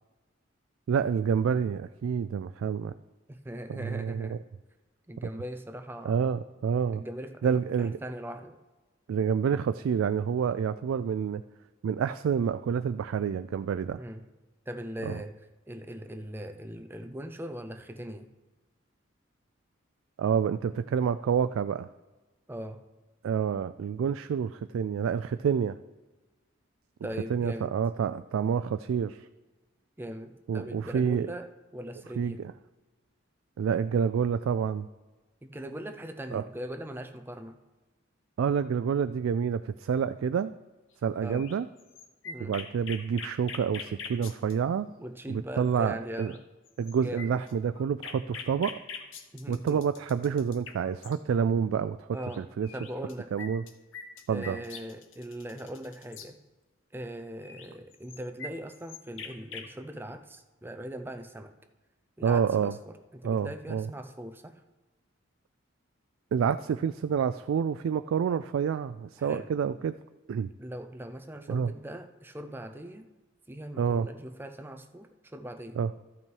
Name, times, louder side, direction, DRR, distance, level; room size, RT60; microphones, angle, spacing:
voice 1, 0.9-2.9 3.7-4.4 6.0-7.0 7.4-8.0 9.1-11.4 11.8-14.0 15.0-15.2 20.2-21.9 23.2-25.8 27.3-29.3 30.5-31.3 32.2-32.5 33.6-34.9 36.3-36.4 38.4-40.5 41.0-41.7 42.4-44.9 45.3-46.3 46.8-48.8 49.5-52.1 52.4-52.7 53.3-53.6 54.3-54.6 62.2-62.7 63.2-63.9 66.3-70.0 70.3-70.5 71.5-71.7 73.8-74.1 75.8-75.9, right 7 dB, 80° right, 12 dB, 0.3 m, -28 dB
voice 2, 3.3-4.4 5.1-6.2 6.9-8.6 14.0-14.3 14.7-15.4 15.7-18.3 22.5-22.8 27.0-27.8 30.0-32.5 35.4-37.6 41.2-41.5 42.2-42.6 45.0-46.4 47.0-47.4 49.3-49.8 52.1-53.4 54.3-56.4 56.9-61.5 62.2-64.6 69.2-69.5 70.6-73.1 73.5-75.8, equal, 10° right, 8 dB, 0.5 m, -40 dB
sound 1, 41.3-44.5 45.8-45.9 46.1-46.4 46.7-51.2 52.2-52.4 52.6-56.3 57.4-59.7, left 5 dB, 70° left, 0.9 m, -43 dB
13.0 x 5.9 x 4.6 m, 1.2 s
head